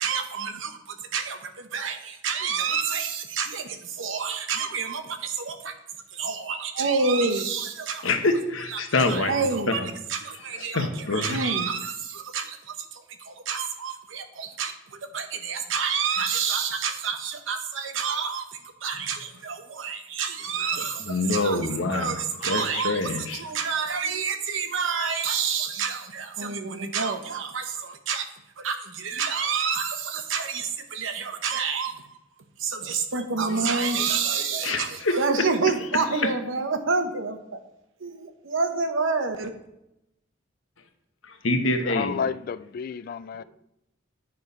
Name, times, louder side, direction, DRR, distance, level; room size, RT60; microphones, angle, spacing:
voice 1, 0.0-5.7 6.1-8.1 9.1-9.8 10.1-10.9 11.2-21.0 21.3-21.6 21.9-28.3 28.6-32.2 32.6-37.6 38.0-39.5, right 5 dB, 75° right, 1.0 m, -28 dB
voice 2, 8.0-9.3 9.7-9.9 10.5-11.5 18.9-19.0 20.6-23.4 33.5-33.6 34.4-35.2 36.1-36.3 41.2-42.2, left 2 dB, 85° left, 1.1 m, -26 dB
voice 3, 41.8-43.4, left 6 dB, 45° left, 0.3 m, -31 dB
9.5 x 4.6 x 5.4 m
head